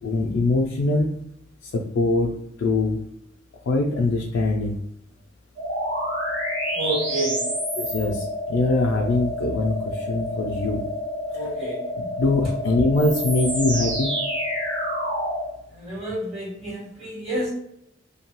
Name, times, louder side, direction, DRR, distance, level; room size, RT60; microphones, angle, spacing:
voice 1, 0.0-1.1 1.6-2.3 2.6-3.0 3.7-4.8 7.8-10.9 11.3-11.5 12.0-14.1, left 2 dB, 90° left, 0 dB, 0.4 m, -23 dB
sound 1, 5.6-15.5, equal, 85° right, 1.2 m, -28 dB
voice 2, 6.7-7.5 11.3-11.8 15.8-17.5, right 1 dB, 35° right, -7 dB, 1.0 m, -29 dB
2.7 x 2.2 x 2.9 m, 0.75 s
head